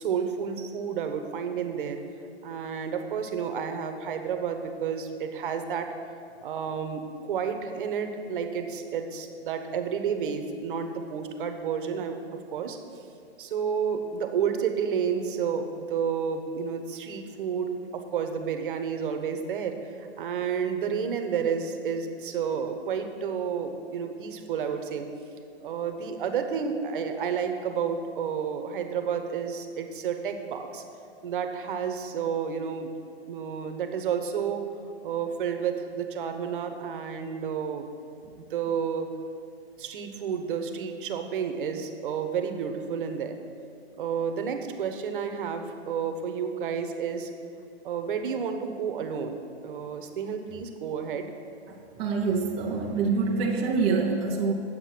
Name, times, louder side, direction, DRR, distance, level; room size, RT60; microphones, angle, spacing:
voice 1, 0.0-2.0 2.4-5.9 6.4-12.2 12.5-12.8 13.4-25.1 25.6-30.8 31.2-32.9 33.3-34.6 35.0-37.9 38.4-39.1 39.8-43.4 44.0-47.3 47.8-51.3, right 7 dB, 50° right, 7 dB, 1.1 m, -31 dB
voice 2, 52.0-54.5, right 4 dB, 15° right, -1 dB, 0.6 m, -25 dB
9.3 x 7.7 x 6.0 m, 2.5 s
hypercardioid pair, 135°, 33 cm